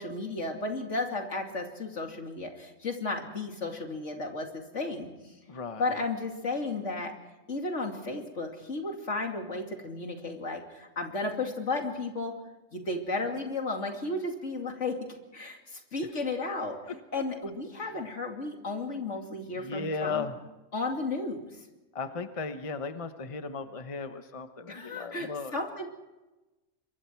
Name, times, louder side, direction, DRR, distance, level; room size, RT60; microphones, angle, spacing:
voice 1, 0.0-5.3 5.8-7.1 7.5-12.3 12.7-16.8 17.1-20.3 20.7-21.6 24.7-25.9, left 3 dB, 75° left, 3 dB, 3.0 m, -34 dB
voice 2, 5.5-5.9 19.5-20.4 21.9-25.6, left 4 dB, 30° left, 9 dB, 1.0 m, -36 dB
26.0 x 23.0 x 4.6 m, 1.1 s
omnidirectional pair, 1.3 m